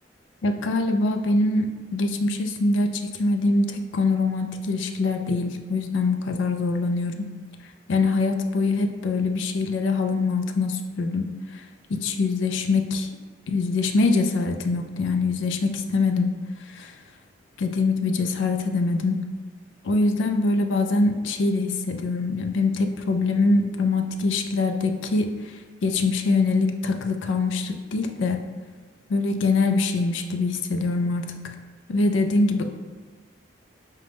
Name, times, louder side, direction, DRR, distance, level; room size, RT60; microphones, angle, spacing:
voice 1, 0.4-7.2 7.9-11.3 11.9-13.1 13.5-16.4 16.7-16.9 17.6-19.2 19.8-25.3 25.8-28.4 29.1-31.3 31.9-32.6, left 3 dB, 70° left, 6 dB, 0.4 m, -23 dB
4.9 x 2.2 x 3.3 m, 1.4 s
head